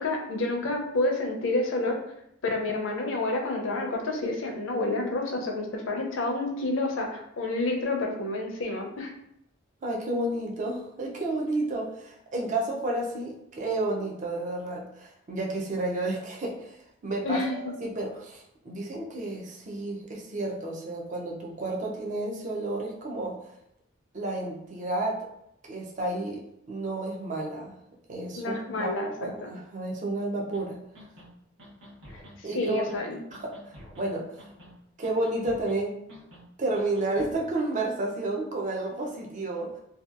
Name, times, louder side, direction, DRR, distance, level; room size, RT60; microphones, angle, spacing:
voice 1, 0.0-2.0 2.4-9.1 17.2-17.6 28.4-29.5 32.5-33.2, left 2 dB, 65° left, 2 dB, 0.5 m, -29 dB
voice 2, 9.8-23.4 24.1-25.3 25.7-26.4 26.7-27.8 28.1-30.8 32.4-32.9 33.3-34.5 35.0-36.0 36.6-39.7, right 2 dB, 35° right, -1 dB, 0.4 m, -31 dB
sound 1, 30.5-30.6 30.9-31.3 31.6-32.3 32.7-33.0 33.3-34.1 34.4-34.8 35.0-35.8 36.1-36.4 36.7-37.4, equal, 60° right, 0.9 m, -48 dB
2.6 x 2.2 x 2.4 m, 0.76 s
head